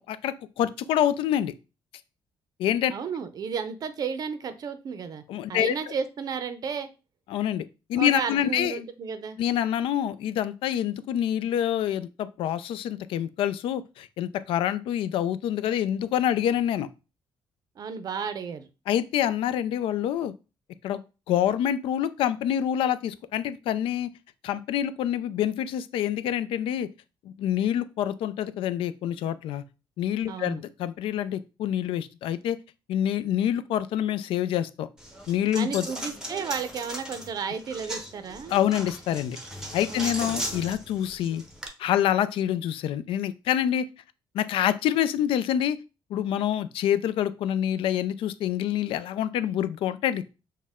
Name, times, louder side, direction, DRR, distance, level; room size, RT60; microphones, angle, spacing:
voice 1, 0.0-1.5 2.6-2.9 5.3-5.7 7.3-8.8 9.4-16.9 18.9-20.3 20.8-21.0 21.3-24.1 24.4-26.9 27.2-29.6 30.0-32.6 32.9-34.9 35.3-35.9 38.5-39.4 39.7-41.4 41.8-43.9 44.3-45.8 46.1-50.2, left 10 dB, 75° left, 14 dB, 0.4 m, -26 dB
voice 2, 2.9-5.2 5.5-6.9 8.0-9.4 17.8-18.7 30.3-30.6 35.5-38.6 39.9-40.4, right 6 dB, 45° right, 11 dB, 0.5 m, -33 dB
Coin (dropping), 35.0-41.7, equal, 5° right, 0.7 m, -37 dB
6.3 x 2.2 x 3.5 m, 0.31 s
cardioid pair, 140°, 9 cm